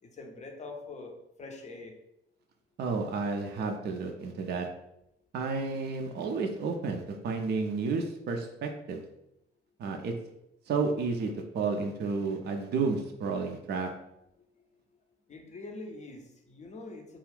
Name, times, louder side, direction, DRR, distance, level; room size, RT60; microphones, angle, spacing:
voice 1, 0.0-2.0 14.4-14.5 15.3-17.2, left 3 dB, 25° left, 3 dB, 0.6 m, -44 dB
voice 2, 2.8-4.7 5.3-9.0 9.8-10.1 10.7-13.9, right 4 dB, 35° right, 4 dB, 0.5 m, -31 dB
2.4 x 2.3 x 3.3 m, 0.81 s
figure-of-eight pair, 40°, 30 cm